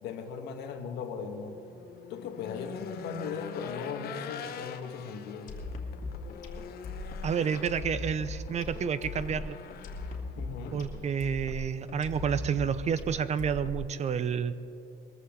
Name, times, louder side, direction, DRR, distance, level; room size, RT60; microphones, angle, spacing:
voice 1, 0.0-1.5 2.1-5.5 10.3-10.8, left 5 dB, 80° left, 5 dB, 1.6 m, -38 dB
Race car auto racing / Engine, 1.2-11.3, left 8 dB, 65° left, 1.1 m, -45 dB
sound 1, 5.5-14.1, left 3 dB, 50° left, 2.3 m, -39 dB
voice 2, 7.2-9.6 10.7-14.5, right 7 dB, 40° right, 14 dB, 0.6 m, -30 dB
21.5 x 14.5 x 3.8 m, 2.8 s
cardioid pair, 110°, 17 cm